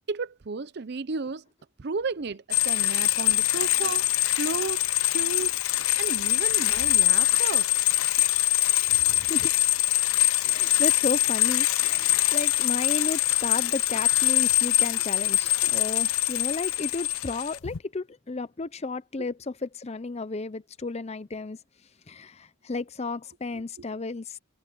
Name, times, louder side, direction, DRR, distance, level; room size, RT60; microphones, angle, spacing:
voice 1, 0.1-1.4 1.8-4.1 4.4-7.7 19.2-19.3 23.5-23.6, right 4 dB, 55° right, 0.6 m, -33 dB
sound 1, 2.5-17.8, left 16 dB, 85° left, 0.6 m, -24 dB
voice 2, 8.9-9.5 10.4-21.6 22.1-24.4, left 3 dB, 30° left, 0.6 m, -33 dB
head